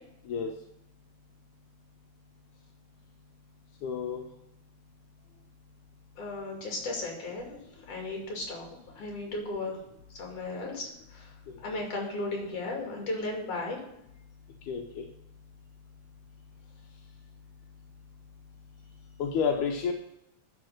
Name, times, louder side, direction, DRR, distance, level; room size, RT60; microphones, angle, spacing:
voice 1, 3.8-4.3 11.5-11.6 14.7-15.1 19.2-19.9, left 6 dB, 85° left, 2 dB, 2.3 m, -30 dB
voice 2, 6.2-9.8 10.1-11.3 11.6-13.8, left 2 dB, 55° left, 0 dB, 3.6 m, -35 dB
11.5 x 4.3 x 6.4 m, 0.81 s
omnidirectional pair, 3.5 m